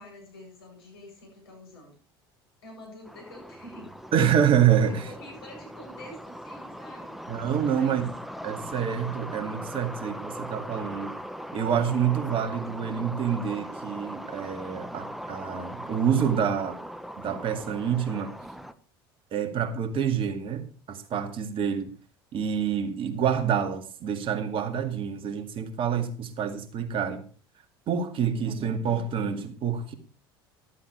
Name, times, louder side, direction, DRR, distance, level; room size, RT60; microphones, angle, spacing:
voice 1, 0.0-1.9 2.6-3.9 5.0-8.1 28.2-29.2, left 1 dB, 80° left, 7.9 m, -47 dB
sound 1, 3.1-18.7, equal, ahead, 1.1 m, -40 dB
voice 2, 4.1-5.1 7.3-8.1 8.4-11.1 11.5-16.8 17.2-18.3 19.3-21.9 22.3-27.2 27.9-29.9, right 8 dB, 45° right, 2.2 m, -27 dB
14.0 x 12.5 x 3.3 m
hypercardioid pair, 70°, 13 cm